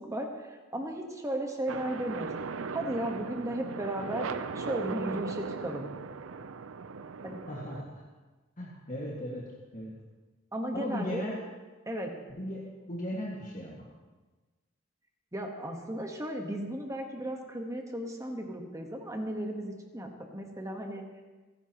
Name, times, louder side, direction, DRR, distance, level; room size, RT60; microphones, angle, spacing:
voice 1, 0.1-2.3 2.7-4.3 4.5-5.9 7.2-7.4 10.5-11.2 11.9-12.1 15.3-21.0, right 1 dB, 15° right, 2 dB, 1.3 m, -35 dB
sound 1, 1.7-7.8, right 5 dB, 80° right, 0.6 m, -38 dB
voice 2, 7.5-8.0 8.6-9.9 10.7-11.4 12.3-13.9, left 1 dB, 40° left, -4 dB, 1.9 m, -37 dB
29.0 x 10.0 x 3.0 m, 1.3 s
head